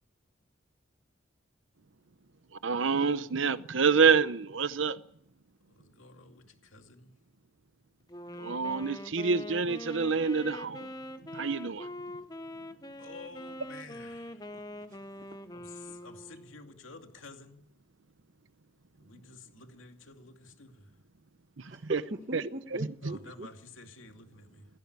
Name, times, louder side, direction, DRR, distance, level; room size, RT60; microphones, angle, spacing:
voice 1, 2.6-5.0 8.4-10.9 11.3-11.9 21.6-22.0 22.3-22.4, right 5 dB, 65° right, 0.8 m, -27 dB
voice 2, 5.7-7.1 13.0-14.4 15.5-17.6 19.0-20.9 21.7-21.8 23.0-24.7, left 3 dB, 75° left, 2.5 m, -51 dB
Wind instrument woodwind instrument, 8.1-16.7, left 1 dB, 20° left, 1.2 m, -43 dB
voice 3, 14.9-15.4 21.7-23.5, right 1 dB, 40° right, 1.3 m, -40 dB
17.5 x 16.5 x 9.5 m
head